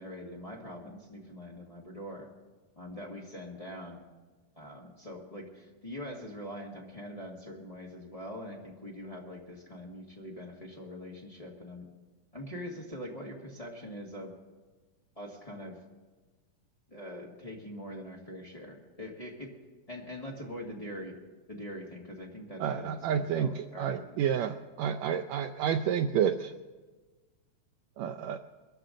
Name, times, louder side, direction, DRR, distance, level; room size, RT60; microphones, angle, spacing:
voice 1, 0.0-2.3 2.7-4.0 4.5-11.8 12.3-14.3 15.1-15.8 16.9-19.5 19.9-21.1 21.5-24.2, left 1 dB, 20° left, -3 dB, 0.9 m, -43 dB
voice 2, 22.6-26.5 28.0-28.4, right 8 dB, 90° right, 6 dB, 1.5 m, -30 dB
22.5 x 14.0 x 3.8 m, 1.3 s
omnidirectional pair, 3.7 m